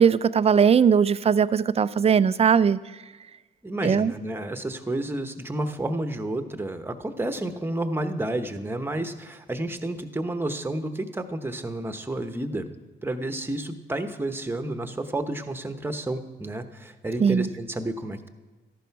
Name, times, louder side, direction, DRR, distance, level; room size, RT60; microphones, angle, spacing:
voice 1, 0.0-2.8 3.8-4.1 17.2-17.5, right 7 dB, 30° right, 16 dB, 0.4 m, -19 dB
voice 2, 3.6-12.7 13.0-18.3, right 1 dB, 10° right, 7 dB, 1.0 m, -30 dB
13.5 x 11.5 x 4.7 m, 1.2 s
cardioid pair, 90°, 20 cm